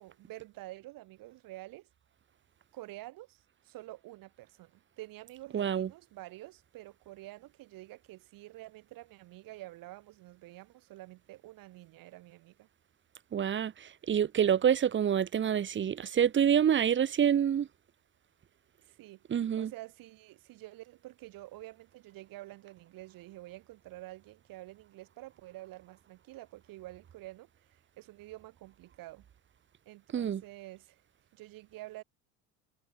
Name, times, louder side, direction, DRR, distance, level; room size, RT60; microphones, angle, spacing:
voice 1, 0.0-1.9 2.7-12.7 18.8-19.2 19.6-29.3 29.9-31.0 31.3-32.0, right 17 dB, 65° right, 5.2 m, -49 dB
voice 2, 5.5-5.9 13.3-17.7 19.3-19.7 30.1-30.4, right 9 dB, 30° right, 1.3 m, -27 dB
cardioid pair, 115°, 37 cm